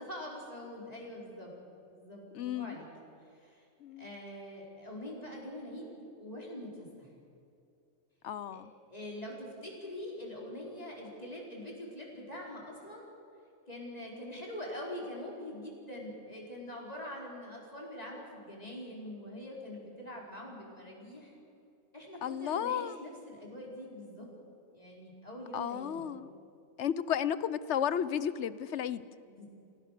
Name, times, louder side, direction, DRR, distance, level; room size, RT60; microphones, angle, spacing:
voice 1, 0.0-1.5 1.9-2.9 3.4-3.6 4.0-7.1 8.5-13.1 13.7-21.3 21.9-24.3 24.7-26.1 29.3-29.4, left 1 dB, 30° left, -3 dB, 5.0 m, -44 dB
voice 2, 2.3-2.8 3.8-4.1 8.2-8.7 22.2-23.0 25.5-26.3 26.8-29.0, left 9 dB, 65° left, 16 dB, 1.0 m, -33 dB
29.0 x 16.5 x 6.7 m, 2.6 s
omnidirectional pair, 1.4 m